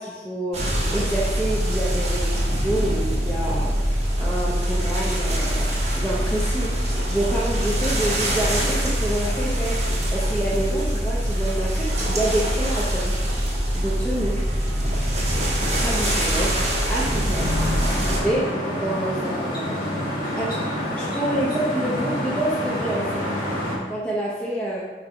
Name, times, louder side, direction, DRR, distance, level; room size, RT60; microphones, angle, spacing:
voice 1, 0.0-5.7 5.9-9.8 10.1-13.1 13.7-14.4 15.8-16.5 16.9-17.5 17.8-18.5 18.8-20.1 20.4-23.3 23.9-24.8, right 1 dB, 5° left, -6 dB, 0.7 m, -28 dB
sound 1, 0.5-18.2, equal, 35° right, 1.2 m, -23 dB
sound 2, 17.3-23.8, left 1 dB, 25° left, 1.6 m, -27 dB
5.2 x 3.9 x 4.7 m, 1.3 s
head